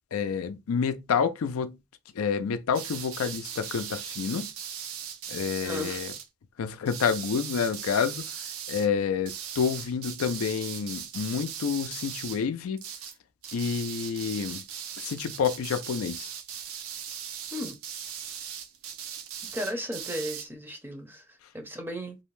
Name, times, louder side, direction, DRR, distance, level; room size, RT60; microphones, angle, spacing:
voice 1, 0.1-1.8 2.1-4.5 5.3-6.1 6.6-8.2 8.7-12.8 13.5-14.6 15.0-16.3, left 6 dB, 85° left, 0.4 m, -29 dB
sound 1, 2.7-6.3 6.9-8.9 9.3-12.5 12.8-13.2 13.4-20.5, right 8 dB, 80° right, 0.5 m, -39 dB
voice 2, 5.6-6.0 17.5-17.8 19.5-22.2, equal, 10° right, 0.5 m, -35 dB
2.5 x 2.1 x 3.0 m
head